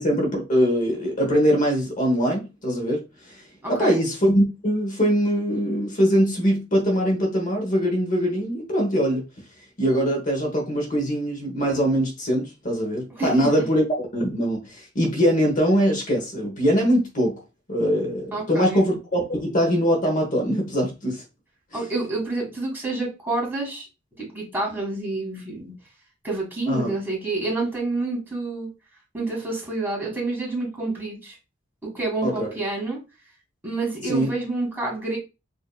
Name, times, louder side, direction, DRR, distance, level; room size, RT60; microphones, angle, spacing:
voice 1, 0.0-3.0 3.3-3.4 3.7-9.2 9.8-13.8 14.1-17.4 17.7-21.2 26.7-26.9 32.2-32.6 34.0-34.3, equal, 40° left, 1.0 m, -22 dB
voice 2, 3.6-4.0 13.2-13.7 18.3-18.8 21.7-23.9 24.2-25.7 26.2-28.7 29.1-31.4 31.8-33.0 33.6-35.2, right 2 dB, 10° right, 1.7 m, -28 dB
5.2 x 2.7 x 2.3 m
head